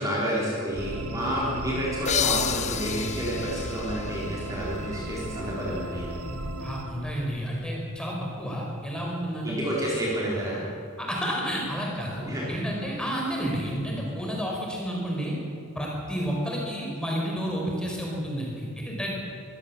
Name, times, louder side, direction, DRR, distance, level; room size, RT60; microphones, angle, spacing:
voice 1, 0.0-6.2 9.4-10.6 12.3-12.5, equal, 15° right, -6 dB, 3.9 m, -29 dB
sound 1, 0.7-6.8, right 1 dB, 75° right, 2.2 m, -35 dB
sound 2, 2.1-5.5, left 9 dB, 30° left, 0.6 m, -31 dB
voice 2, 6.6-9.6 11.0-15.3 15.7-19.1, equal, 5° left, -2 dB, 4.9 m, -30 dB
24.0 x 16.0 x 7.5 m, 2.3 s
head